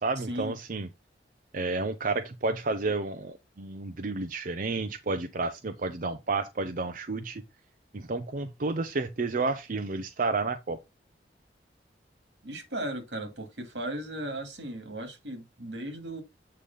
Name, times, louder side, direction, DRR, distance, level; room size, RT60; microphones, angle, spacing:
voice 1, 0.0-0.9 1.5-7.4 7.9-10.8, right 3 dB, 50° right, 0.7 m, -31 dB
voice 2, 12.4-16.2, right 1 dB, 85° right, 2.5 m, -36 dB
8.4 x 3.4 x 5.5 m
head